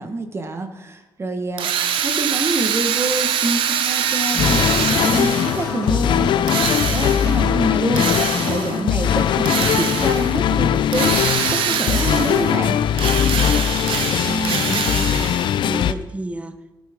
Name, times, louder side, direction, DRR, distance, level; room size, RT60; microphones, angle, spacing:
voice 1, 0.0-1.7 2.0-6.3 6.7-12.8, right 2 dB, 30° right, 7 dB, 1.2 m, -26 dB
Drill, 1.6-5.7 6.5-7.4 8.0-8.8 9.5-10.4 10.9-12.6 12.9-15.6, right 8 dB, 90° right, 0.9 m, -24 dB
sound 1, 4.3-9.7, left 2 dB, 30° left, 4.7 m, -31 dB
sound 2, 4.4-15.9, left 9 dB, 65° left, 0.4 m, -20 dB
voice 2, 14.2-16.8, right 2 dB, 15° right, 9 dB, 0.9 m, -30 dB
17.0 x 9.3 x 3.6 m, 1.1 s
cardioid pair, 105°, 9 cm